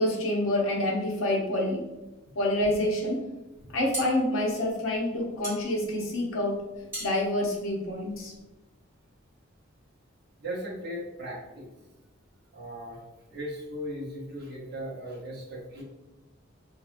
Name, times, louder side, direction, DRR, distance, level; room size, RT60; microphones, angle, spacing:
voice 1, 0.0-1.8 2.3-3.2 3.7-6.6 7.0-8.3, left 1 dB, 75° left, -1 dB, 0.7 m, -27 dB
sound 1, 3.6-8.5, right 1 dB, 10° right, 1.3 m, -41 dB
voice 2, 10.4-11.7 12.5-13.0 13.3-15.8, equal, 55° right, -5 dB, 0.8 m, -37 dB
2.7 x 2.4 x 2.4 m, 1.1 s
head